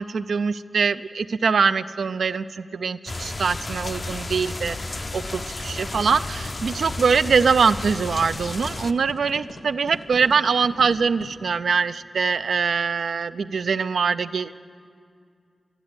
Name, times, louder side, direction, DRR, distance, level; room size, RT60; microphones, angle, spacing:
voice 1, 0.0-4.8 5.1-14.6, right 5 dB, 85° right, 13 dB, 0.3 m, -23 dB
sound 1, 3.1-8.9, left 2 dB, 40° left, 0.4 m, -32 dB
sound 2, 3.9-11.3, left 2 dB, 85° left, 1.6 m, -43 dB
11.5 x 11.0 x 7.9 m, 2.3 s
wide cardioid pair, 95°, 0 cm